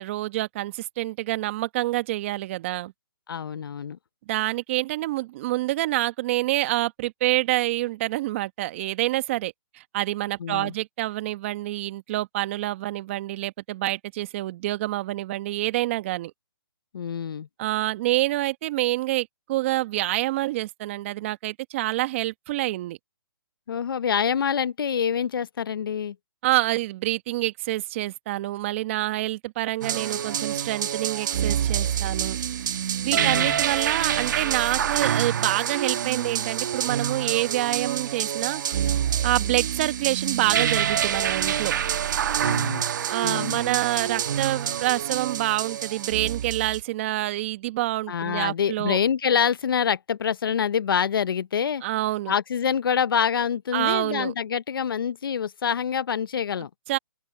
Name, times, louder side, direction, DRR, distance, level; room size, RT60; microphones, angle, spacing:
voice 1, 0.0-2.9 4.3-16.3 17.6-23.0 26.4-32.4 33.0-38.6 39.2-41.7 43.1-49.0 51.8-52.3 53.7-54.3 56.9-57.0, right 17 dB, 30° right, 1.7 m, -27 dB
voice 2, 3.3-4.0 10.4-10.7 16.9-17.5 23.7-26.1 33.1-33.6 42.4-42.8 43.2-43.6 48.1-51.8 52.3-56.7, left 7 dB, 65° left, 0.9 m, -26 dB
strange music, 29.8-46.8, right 9 dB, 50° right, 1.7 m, -26 dB
hypercardioid pair, 155°, 13 cm